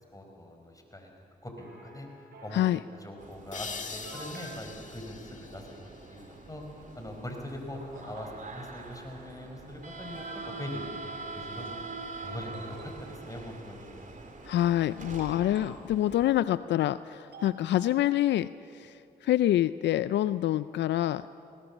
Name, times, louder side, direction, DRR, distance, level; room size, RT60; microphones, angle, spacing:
voice 1, 0.1-1.1 1.4-2.1 2.4-2.6 3.0-6.6 6.9-11.8 12.2-13.9, left 1 dB, 20° left, 3 dB, 5.1 m, -42 dB
sound 1, 1.6-2.8 3.5-3.6 4.0-4.6 7.2-7.3 7.7-8.3 9.4-9.5 10.0-10.8 12.5-13.4 14.8-15.9 17.3-18.2, right 3 dB, 65° right, 5.9 m, -49 dB
sound 2, 3.2-16.3, right 3 dB, 45° right, 3.0 m, -44 dB
sound 3, 3.5-6.9, left 5 dB, 40° left, 2.1 m, -43 dB
voice 2, 14.5-21.3, left 13 dB, 75° left, 16 dB, 0.4 m, -26 dB
20.0 x 18.0 x 7.3 m, 2.7 s
supercardioid pair, 45°, 18 cm